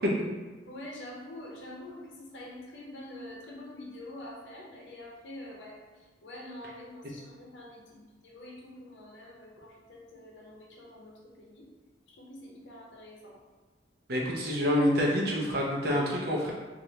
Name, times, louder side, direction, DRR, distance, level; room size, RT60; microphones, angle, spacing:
voice 1, 0.7-5.8 6.2-11.7 12.1-13.4, left 1 dB, 80° left, -2 dB, 0.7 m, -46 dB
voice 2, 14.1-16.5, equal, 60° right, -2 dB, 0.7 m, -27 dB
3.2 x 2.5 x 2.8 m, 1.3 s
head